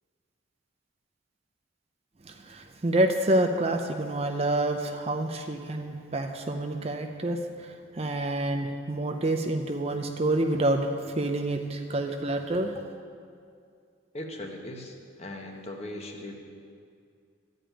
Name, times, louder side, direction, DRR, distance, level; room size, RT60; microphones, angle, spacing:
voice 1, 2.2-12.8, right 1 dB, 30° right, 5 dB, 0.5 m, -28 dB
voice 2, 14.1-16.3, left 1 dB, 30° left, 2 dB, 1.1 m, -39 dB
13.0 x 5.2 x 8.8 m, 2.3 s
head